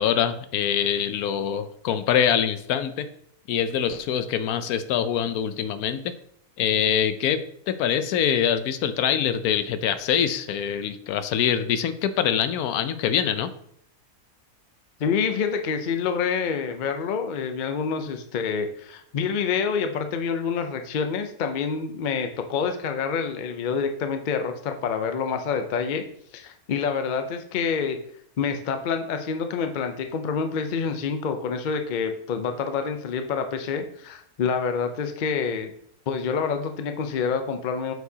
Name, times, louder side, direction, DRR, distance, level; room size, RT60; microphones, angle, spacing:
voice 1, 0.0-3.1 3.5-6.1 6.6-13.5, left 8 dB, 80° left, 11 dB, 1.1 m, -24 dB
voice 2, 15.0-26.0 26.3-28.0 28.4-35.7 36.1-37.9, left 6 dB, 60° left, 6 dB, 0.4 m, -27 dB
7.8 x 4.7 x 2.8 m, 0.67 s
omnidirectional pair, 1.6 m